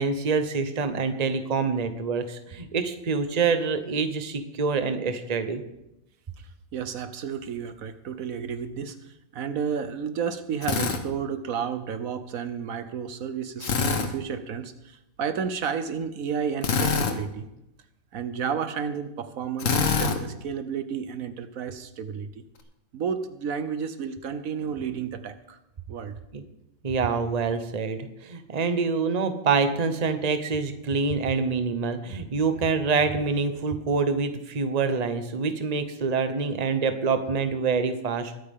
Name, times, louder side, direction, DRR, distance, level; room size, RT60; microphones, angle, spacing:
voice 1, 0.0-5.6 26.3-26.4 26.8-38.4, right 5 dB, 30° right, 8 dB, 1.0 m, -26 dB
voice 2, 6.4-17.5 18.1-22.4 22.9-25.6 25.9-26.2, right 7 dB, 75° right, 10 dB, 1.3 m, -32 dB
Drill, 10.6-11.0 13.6-14.1 16.6-17.2 19.6-20.2, left 5 dB, 65° left, 1.5 m, -24 dB
21.5 x 9.1 x 3.7 m, 0.86 s
omnidirectional pair, 1.5 m